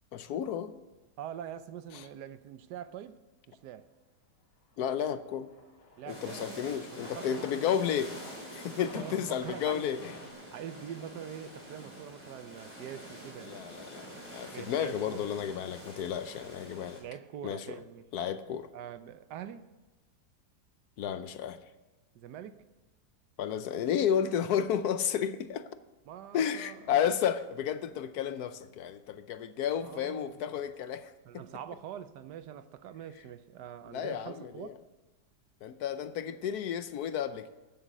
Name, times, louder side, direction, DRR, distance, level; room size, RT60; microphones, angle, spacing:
voice 1, 0.1-0.7 4.8-5.5 6.1-8.1 8.5-10.1 13.4-17.0 17.4-17.8 18.1-18.7 21.0-21.7 23.4-25.6 26.3-31.1 33.9-34.7 35.6-37.5, left 9 dB, 70° left, 1.1 m, -32 dB
voice 2, 1.2-3.2 3.5-3.9 6.0-7.8 8.9-9.9 10.5-13.6 14.5-15.3 17.0-18.1 18.7-19.7 22.1-22.6 26.1-27.0 29.8-30.5 31.3-34.7, right 9 dB, 80° right, 1.3 m, -44 dB
Aircraft, 4.6-10.3, left 2 dB, 85° left, 2.5 m, -52 dB
sound 1, 6.1-17.0, equal, 5° right, 3.6 m, -47 dB
13.5 x 7.2 x 6.6 m
omnidirectional pair, 1.8 m